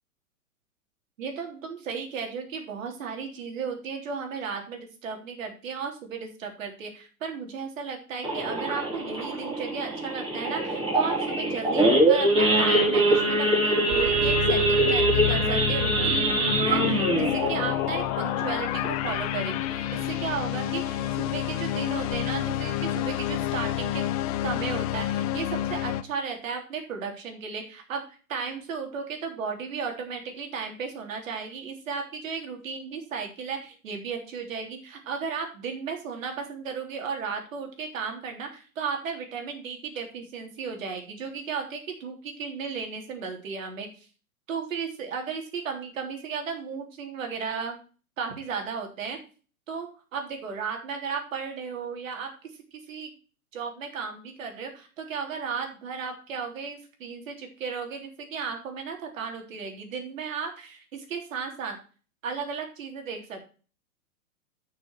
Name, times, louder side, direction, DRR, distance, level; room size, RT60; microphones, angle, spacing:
voice 1, 1.2-24.1 24.4-44.1 44.5-47.7 48.2-49.2 49.7-49.9 50.1-52.3 52.7-53.1 53.5-61.8 62.2-63.4, right 5 dB, 65° right, 3 dB, 3.5 m, -35 dB
Idling / Accelerating revving vroom / Sawing, 8.2-19.3 19.7-19.9 20.2-20.3 20.7-21.0 21.5-21.6 21.8-22.1, right 2 dB, 15° right, 4.5 m, -24 dB
sound 1, 13.9-26.0, left 12 dB, 25° left, 0.5 m, -29 dB
10.5 x 6.5 x 4.7 m, 0.37 s
hypercardioid pair, 120°, 43 cm